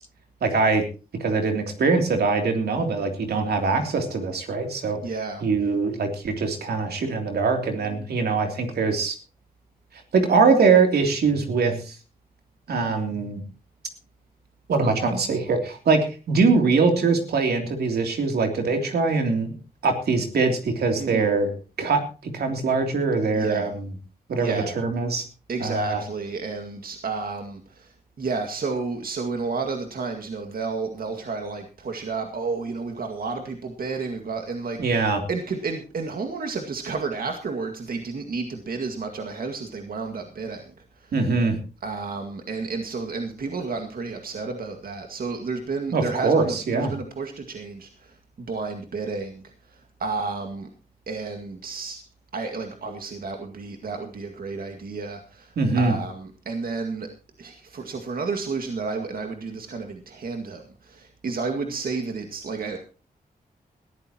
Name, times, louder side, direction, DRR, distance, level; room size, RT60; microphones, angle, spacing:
voice 1, 0.4-0.8 1.2-5.0 5.4-9.2 10.1-11.9 12.7-13.4 14.7-19.5 19.8-22.0 22.3-23.8 24.3-25.2 25.6-26.0 34.8-35.2 41.1-41.6 45.9-46.9 55.6-56.0, right 4 dB, 85° right, 4 dB, 3.1 m, -22 dB
voice 2, 5.0-5.4 21.0-21.3 23.3-23.7 24.4-24.7 25.5-40.7 41.0-41.1 41.8-50.7 51.1-52.0 52.3-57.1 57.4-62.8, right 4 dB, 65° right, 4 dB, 2.0 m, -31 dB
20.0 x 14.0 x 3.0 m, 0.34 s
cardioid pair, 80°, 16 cm